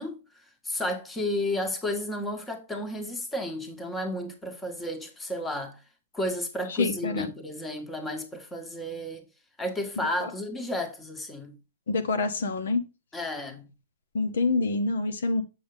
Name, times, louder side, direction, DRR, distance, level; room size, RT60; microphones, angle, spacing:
voice 1, 0.0-5.8 6.1-9.3 9.6-11.5 13.1-13.7, left 1 dB, 10° left, 1.5 m, -32 dB
voice 2, 6.7-7.3 10.2-10.3 11.9-12.8 14.1-15.4, left 3 dB, 75° left, 1.1 m, -26 dB
7.3 x 6.9 x 3.5 m
hypercardioid pair, 135°, 0 cm